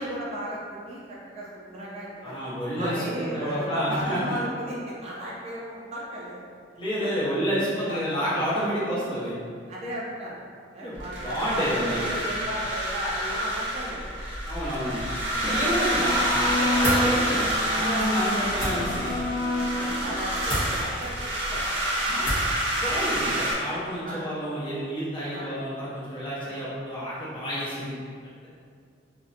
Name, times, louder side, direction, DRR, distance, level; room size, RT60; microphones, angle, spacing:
voice 1, 0.0-2.4 2.8-6.4 7.9-8.0 9.7-10.3 10.7-14.0 14.8-14.9 15.4-15.6 16.2-16.3 18.1-18.4 19.7-21.9 23.1-23.5 24.0-24.3 25.3-25.5 26.4-26.6, right 1 dB, 35° right, -5 dB, 0.3 m, -36 dB
voice 2, 2.2-4.4 6.8-9.4 10.8-12.1 14.5-15.0 15.3-19.1 22.0-22.2 22.8-27.9, equal, 25° left, -10 dB, 0.8 m, -29 dB
sound 1, 10.9-23.5, right 1 dB, 85° right, 0.5 m, -28 dB
sound 2, 15.4-20.6, left 1 dB, 85° left, 0.4 m, -29 dB
sound 3, 16.8-17.0 18.5-18.7 20.4-20.7 22.2-22.5, equal, 65° left, 0.9 m, -27 dB
2.5 x 2.1 x 2.5 m, 2.2 s
head